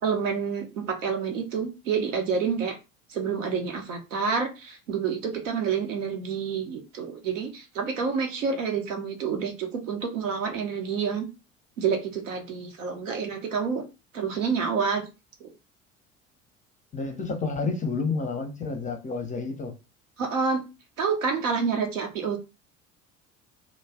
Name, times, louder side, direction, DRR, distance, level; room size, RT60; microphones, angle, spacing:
voice 1, 0.0-2.8 3.1-11.3 11.8-13.8 14.1-15.1 15.4-15.5 20.2-20.6 21.0-22.4, right 6 dB, 70° right, 0.8 m, -28 dB
voice 2, 16.9-19.7, left 4 dB, 20° left, 0.6 m, -30 dB
2.3 x 2.0 x 3.5 m
figure-of-eight pair, 60°, 39 cm